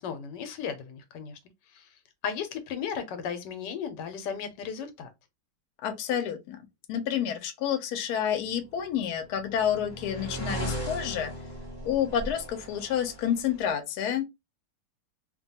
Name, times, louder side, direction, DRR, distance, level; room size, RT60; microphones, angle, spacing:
voice 1, 0.0-1.4 1.7-5.1, left 7 dB, 90° left, 1.3 m, -35 dB
voice 2, 5.8-11.3 11.8-14.2, left 9 dB, 70° left, 1.0 m, -29 dB
sound 1, 8.8-13.7, equal, 20° left, 0.9 m, -37 dB
2.9 x 2.2 x 2.7 m
omnidirectional pair, 1.8 m